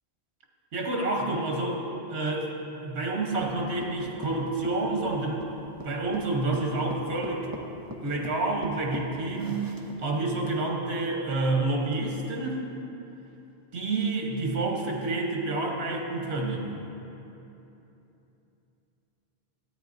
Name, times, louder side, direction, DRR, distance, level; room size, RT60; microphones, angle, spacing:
voice 1, 0.7-5.5 5.8-7.6 8.0-12.6 13.7-16.7, right 2 dB, 85° right, 0 dB, 1.3 m, -29 dB
sound 1, 3.4-10.2, right 1 dB, 25° right, 0.5 m, -41 dB
14.0 x 8.7 x 2.6 m, 3.0 s
omnidirectional pair, 1.1 m